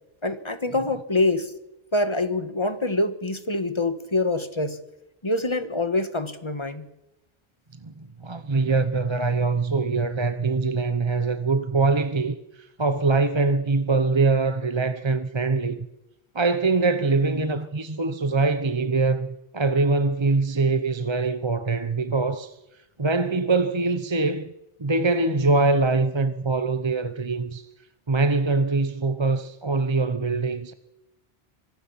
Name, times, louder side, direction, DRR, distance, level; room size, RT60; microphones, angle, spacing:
voice 1, 0.2-1.5 1.9-4.8 5.2-6.9, left 2 dB, 30° left, 1.5 m, -25 dB
voice 2, 7.8-15.9 16.3-22.6 23.0-24.5 24.8-27.7 28.1-30.7, right 3 dB, 30° right, 0.9 m, -23 dB
25.5 x 19.0 x 5.8 m
omnidirectional pair, 1.0 m